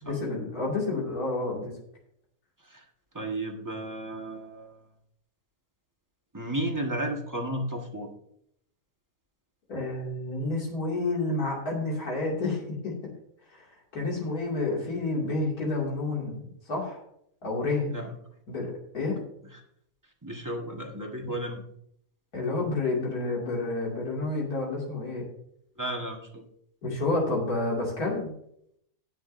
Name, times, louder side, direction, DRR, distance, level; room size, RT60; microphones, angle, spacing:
voice 1, 0.0-1.7 9.7-12.9 13.5-13.6 13.9-17.0 17.4-18.0 18.5-19.2 22.3-25.3 26.8-28.3, left 2 dB, 90° left, -3 dB, 2.9 m, -29 dB
voice 2, 3.1-4.8 6.3-8.1 17.9-18.1 20.2-21.6 25.8-26.4, right 1 dB, 15° right, 2 dB, 1.4 m, -33 dB
19.0 x 6.4 x 2.6 m, 0.72 s
omnidirectional pair, 1.5 m